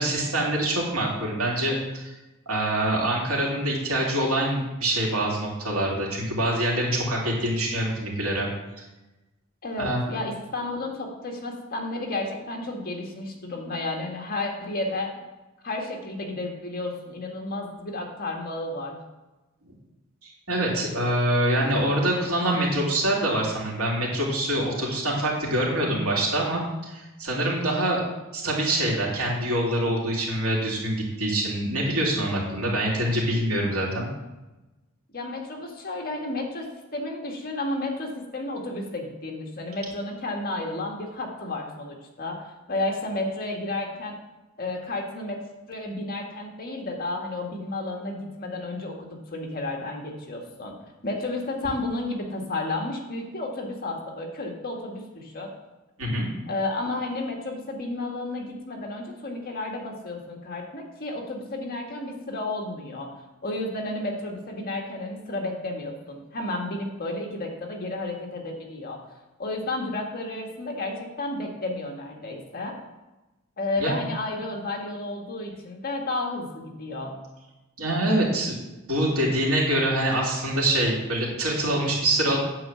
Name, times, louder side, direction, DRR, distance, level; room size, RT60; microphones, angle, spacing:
voice 1, 0.0-2.1 2.5-8.5 9.8-10.0 20.2-28.0 28.3-34.1 56.0-56.3 73.8-73.9 77.8-78.6 78.9-82.4, right 1 dB, 70° right, -3 dB, 3.0 m, -25 dB
voice 2, 9.6-15.1 15.6-19.0 35.1-44.2 44.6-45.4 45.7-50.7 51.0-55.5 56.5-63.1 63.4-69.0 69.4-72.8 73.6-77.2, left 2 dB, 45° left, 1 dB, 1.7 m, -32 dB
9.0 x 4.8 x 7.6 m, 1.1 s
head